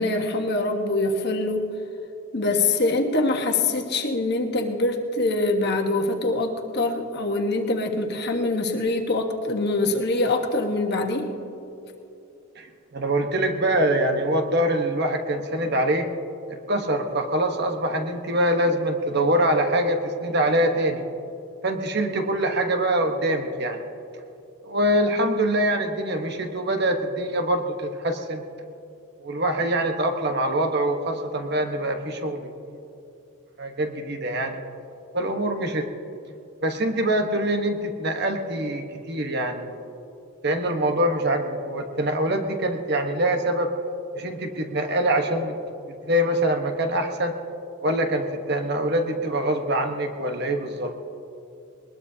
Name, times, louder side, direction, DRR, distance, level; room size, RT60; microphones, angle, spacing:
voice 1, 0.0-1.7 2.3-11.3, left 2 dB, 50° left, 3 dB, 1.3 m, -24 dB
voice 2, 12.9-16.1 16.5-21.0 21.6-23.9 24.6-28.4 29.2-32.8 33.6-34.6 35.1-35.9 36.6-39.9 40.4-43.7 44.1-45.6 45.9-47.3 47.8-50.9, right 1 dB, 50° right, 5 dB, 1.2 m, -24 dB
21.0 x 20.0 x 2.8 m, 2.8 s
head